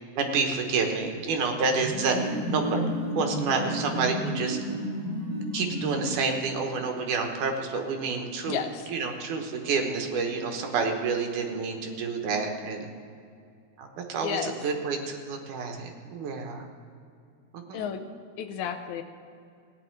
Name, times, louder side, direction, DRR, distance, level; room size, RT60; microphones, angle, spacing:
voice 1, 0.2-4.6 5.5-8.6 8.9-12.9 13.8-16.7 17.5-17.9, right 4 dB, 85° right, 4 dB, 2.7 m, -29 dB
sound 1, 1.6-6.5, equal, 30° right, 3.2 m, -32 dB
voice 2, 8.5-8.9 14.2-14.5 17.7-18.0 18.4-19.0, left 8 dB, 75° left, 8 dB, 2.0 m, -32 dB
16.5 x 9.6 x 4.6 m, 2.4 s
omnidirectional pair, 3.4 m